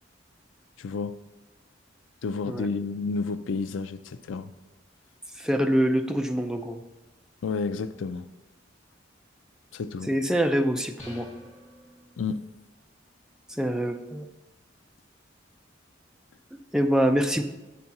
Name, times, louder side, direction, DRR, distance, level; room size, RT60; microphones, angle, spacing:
voice 1, 0.8-1.2 2.2-4.5 7.4-8.2 9.7-10.1 12.2-12.4, left 4 dB, 85° left, 0.4 m, -30 dB
voice 2, 5.4-6.8 10.1-11.3 13.5-14.3 16.7-17.4, equal, 5° right, 0.4 m, -25 dB
sound 1, 11.0-12.6, equal, 40° left, 1.7 m, -48 dB
8.6 x 4.1 x 5.9 m
head